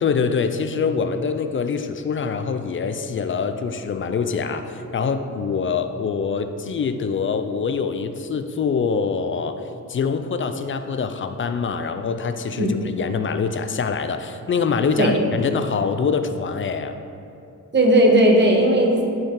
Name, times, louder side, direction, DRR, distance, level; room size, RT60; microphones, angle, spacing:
voice 1, 0.0-9.6 9.9-17.0, left 5 dB, 40° left, 9 dB, 0.4 m, -24 dB
voice 2, 17.7-19.0, right 1 dB, 35° right, 0 dB, 1.1 m, -16 dB
10.5 x 4.5 x 3.7 m, 2.8 s
wide cardioid pair, 120°, 30 cm